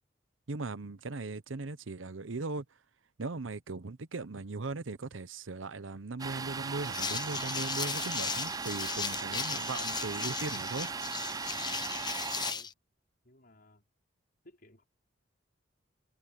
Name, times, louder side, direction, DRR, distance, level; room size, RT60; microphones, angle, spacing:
voice 1, 0.5-2.6 3.2-10.9, right 3 dB, 90° right, 0.9 m, -38 dB
Domestic sounds home sounds, 6.2-12.5, right 5 dB, 20° right, 0.4 m, -38 dB
sound 1, 6.8-12.7, left 6 dB, 20° left, 1.0 m, -36 dB
voice 2, 11.8-12.7 13.2-13.8 14.4-14.8, left 2 dB, 50° left, 5.4 m, -58 dB
head